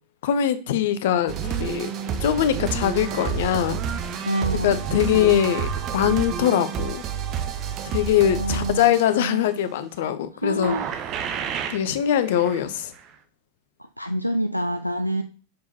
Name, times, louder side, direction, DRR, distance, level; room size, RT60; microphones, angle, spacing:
voice 1, 0.2-1.9 2.2-3.8 4.6-7.0 7.8-10.8 11.7-12.9, left 10 dB, 55° left, 0.8 m, -22 dB
sound 1, 1.3-9.5 10.6-11.9 12.3-12.7 13.0-13.1, right 8 dB, 35° right, 0.9 m, -29 dB
voice 2, 4.3-4.8 8.4-9.4 10.4-11.0 14.0-15.2, equal, 90° left, 0.4 m, -27 dB
6.3 x 4.7 x 4.1 m
figure-of-eight pair, 90°, 0 cm